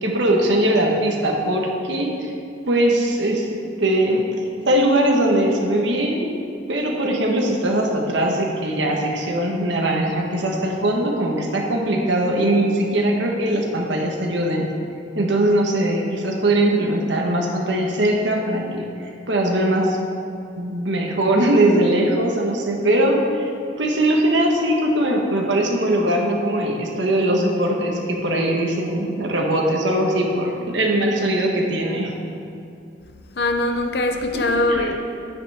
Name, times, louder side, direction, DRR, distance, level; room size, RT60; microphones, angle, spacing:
voice 1, 0.0-2.3 2.7-3.5 3.8-6.3 6.7-14.7 15.1-20.0 20.6-23.5 23.8-32.1 34.3-35.0, right 1 dB, 80° right, 1.4 m, -21 dB
voice 2, 33.4-35.0, left 2 dB, 60° left, 0.8 m, -21 dB
11.0 x 9.7 x 3.7 m
head